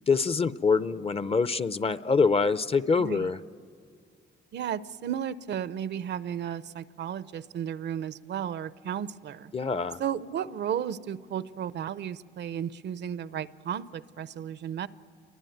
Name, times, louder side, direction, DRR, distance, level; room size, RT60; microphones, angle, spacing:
voice 1, 0.1-3.4 9.5-10.0, left 4 dB, 30° left, 15 dB, 0.7 m, -25 dB
voice 2, 3.0-3.3 4.5-9.5 10.0-14.9, right 9 dB, 60° right, 17 dB, 0.7 m, -34 dB
29.0 x 22.5 x 9.3 m, 2.2 s
cardioid pair, 90°, 20 cm